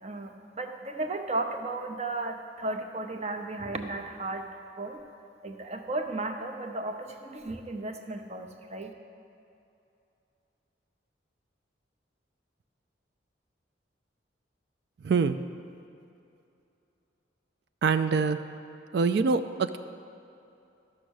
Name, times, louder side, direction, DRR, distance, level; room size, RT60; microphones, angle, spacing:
voice 1, 0.0-4.5 4.8-5.0 5.4-8.9, right 2 dB, 35° right, 5 dB, 0.7 m, -34 dB
voice 2, 15.0-15.4 17.8-18.4 18.9-19.8, right 5 dB, 60° right, 10 dB, 0.3 m, -24 dB
13.0 x 6.1 x 6.4 m, 2.7 s
head